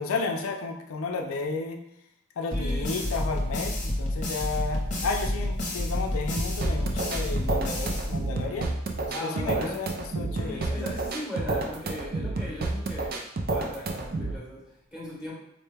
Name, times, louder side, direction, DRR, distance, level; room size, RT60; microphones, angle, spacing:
voice 1, 0.0-1.8 2.4-10.9, left 3 dB, 80° left, 4 dB, 0.4 m, -33 dB
sound 1, 2.5-8.6, left 1 dB, 35° left, 0.7 m, -30 dB
voice 2, 2.5-2.9 9.1-9.8 10.4-13.2 13.5-15.3, equal, 5° right, -5 dB, 0.9 m, -38 dB
sound 2, 6.4-14.4, right 2 dB, 45° right, 0.4 m, -30 dB
4.1 x 2.2 x 3.2 m, 0.78 s
head